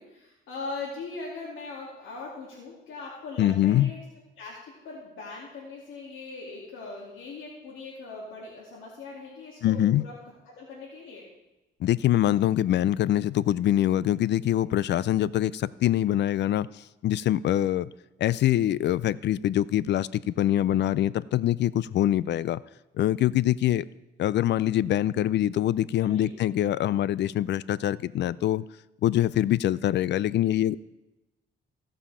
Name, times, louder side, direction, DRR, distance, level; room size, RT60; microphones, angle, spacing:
voice 1, 0.0-4.0 4.4-10.2 10.5-11.3 26.0-26.3, left 3 dB, 85° left, -6 dB, 2.6 m, -40 dB
voice 2, 3.4-3.9 9.6-10.0 11.8-16.7 17.0-17.9 18.2-22.6 23.0-23.8 24.2-28.6 29.0-30.8, left 12 dB, 60° left, 20 dB, 0.4 m, -24 dB
16.5 x 5.6 x 4.9 m, 0.99 s
cardioid pair, 90°, 20 cm